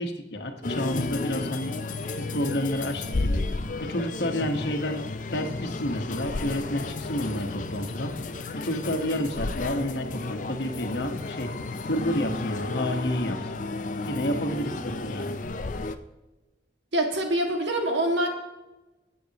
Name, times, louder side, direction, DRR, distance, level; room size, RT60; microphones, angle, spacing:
voice 1, 0.0-1.7 2.2-3.5 3.8-5.0 5.3-8.1 8.5-11.5 11.9-13.4 14.0-15.4, left 1 dB, 70° left, 5 dB, 1.3 m, -30 dB
sound 1, 0.6-16.0, left 3 dB, 45° left, 0.5 m, -33 dB
sound 2, 0.7-15.3, left 8 dB, 5° right, 3.3 m, -52 dB
voice 2, 16.9-18.3, right 1 dB, 85° right, 2 dB, 2.0 m, -25 dB
20.0 x 8.5 x 3.0 m, 1.1 s
head